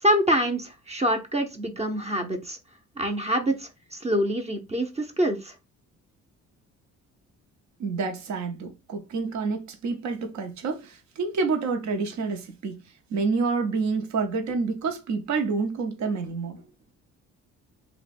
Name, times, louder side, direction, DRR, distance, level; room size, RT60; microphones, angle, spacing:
voice 1, 0.0-2.6 3.0-5.5, equal, 20° right, 0.6 m, -26 dB
voice 2, 7.8-12.8 13.1-16.6, right 4 dB, 70° right, 0.8 m, -28 dB
2.8 x 2.2 x 4.1 m
cardioid pair, 90°, 30 cm